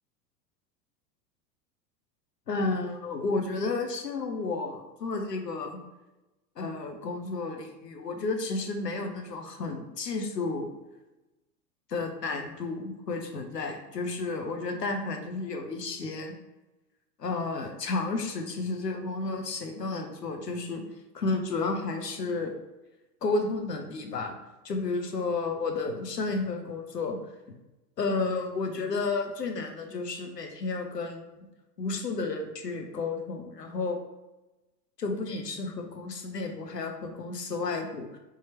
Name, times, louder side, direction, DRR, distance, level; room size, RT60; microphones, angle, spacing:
voice 1, 2.5-5.8 6.6-10.7 11.9-16.3 17.2-20.8 21.1-22.5 23.2-24.3 24.6-27.2 28.0-31.5 31.8-34.0 35.0-38.2, left 3 dB, 80° left, 4 dB, 0.8 m, -32 dB
4.4 x 3.7 x 3.0 m, 1.0 s
figure-of-eight pair, 80°, 48 cm